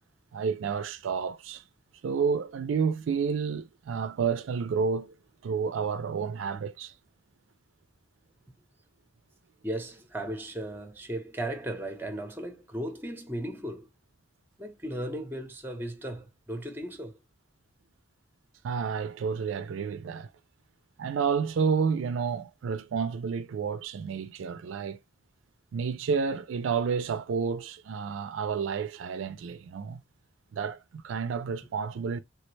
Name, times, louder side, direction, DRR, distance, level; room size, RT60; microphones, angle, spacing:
voice 1, 0.3-1.6 2.0-5.1 5.4-6.9 18.6-20.3 21.0-25.0 25.7-30.0 30.5-32.2, right 6 dB, 75° right, 0.4 m, -30 dB
voice 2, 9.6-13.9 14.6-17.2, right 1 dB, 10° right, 0.7 m, -36 dB
3.3 x 2.1 x 3.1 m
head